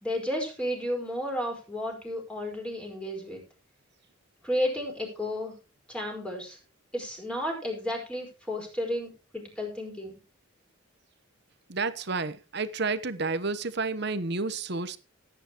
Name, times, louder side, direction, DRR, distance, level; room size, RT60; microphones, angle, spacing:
voice 1, 0.0-3.4 4.4-5.5 5.9-6.6 6.9-10.1, left 1 dB, 5° left, 4.8 m, -32 dB
voice 2, 11.7-15.0, right 3 dB, 50° right, 1.0 m, -30 dB
17.0 x 9.1 x 3.0 m
head